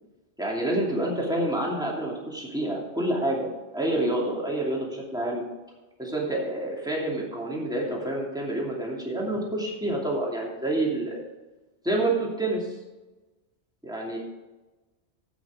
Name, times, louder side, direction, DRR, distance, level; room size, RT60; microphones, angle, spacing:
voice 1, 0.4-3.5 3.7-5.4 6.0-11.2 11.8-12.7 13.8-14.2, right 1 dB, 5° right, -3 dB, 2.6 m, -28 dB
15.5 x 6.3 x 4.8 m, 1.1 s
omnidirectional pair, 1.2 m